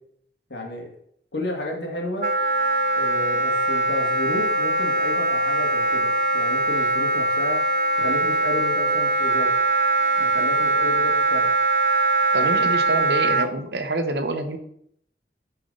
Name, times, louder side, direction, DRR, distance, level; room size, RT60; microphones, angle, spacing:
voice 1, 0.5-0.9 1.3-2.3 2.9-7.6 8.0-9.5 10.2-11.5 12.3-12.6, left 1 dB, 75° left, 0 dB, 2.1 m, -32 dB
Wind instrument woodwind instrument, 2.2-13.5, right 2 dB, 50° right, 0.5 m, -21 dB
voice 2, 12.3-14.6, right 2 dB, 70° right, 7 dB, 1.1 m, -26 dB
9.0 x 4.7 x 5.5 m, 0.69 s
head